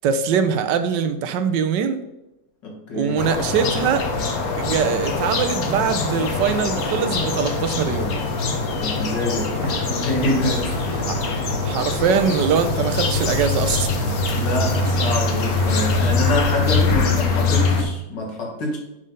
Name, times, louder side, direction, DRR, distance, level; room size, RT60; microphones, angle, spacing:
voice 1, 0.0-2.0 2.9-4.1 4.6-8.2 11.0-11.2 11.6-13.9, right 7 dB, 80° right, 9 dB, 1.3 m, -22 dB
voice 2, 2.6-3.2 8.7-10.7 14.2-18.8, left 2 dB, 80° left, 0 dB, 2.4 m, -26 dB
sound 1, 3.2-17.8, left 3 dB, 60° left, 1.4 m, -23 dB
Walk footsteps, 9.1-16.8, right 4 dB, 55° right, 0.7 m, -38 dB
6.5 x 5.5 x 5.4 m, 0.92 s
omnidirectional pair, 1.9 m